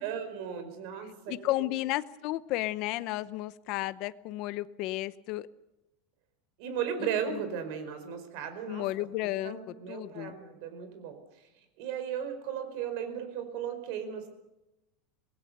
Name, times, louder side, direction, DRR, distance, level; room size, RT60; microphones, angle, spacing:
voice 1, 0.0-1.3 6.6-8.8 9.4-11.2 11.8-14.3, right 8 dB, 55° right, 8 dB, 4.8 m, -36 dB
voice 2, 1.3-5.5 7.0-7.4 8.7-10.4, left 17 dB, 45° left, 15 dB, 0.8 m, -33 dB
26.0 x 19.5 x 6.8 m, 0.95 s
supercardioid pair, 170°, 0 cm